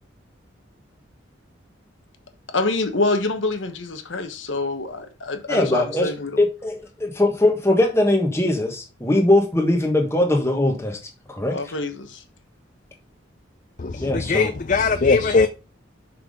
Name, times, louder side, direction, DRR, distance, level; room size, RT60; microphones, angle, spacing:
voice 1, 2.5-6.4 11.5-12.2, left 2 dB, 80° left, 1.3 m, -26 dB
voice 2, 5.5-6.1 6.4-11.0 11.3-11.6 14.0-14.5, left 1 dB, 15° left, 1.4 m, -20 dB
voice 3, 13.8-15.5, left 4 dB, 40° left, 0.5 m, -20 dB
6.0 x 5.9 x 5.1 m
head